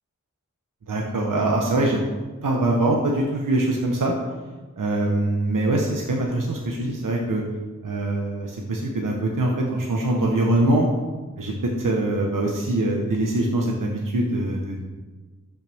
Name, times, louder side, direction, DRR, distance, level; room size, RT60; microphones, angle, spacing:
voice 1, 0.9-2.0 2.4-4.1 4.8-7.4 7.8-10.9 11.4-14.8, right 2 dB, 70° right, 0 dB, 1.2 m, -23 dB
13.0 x 5.9 x 3.6 m, 1.3 s
cardioid pair, 40°, 33 cm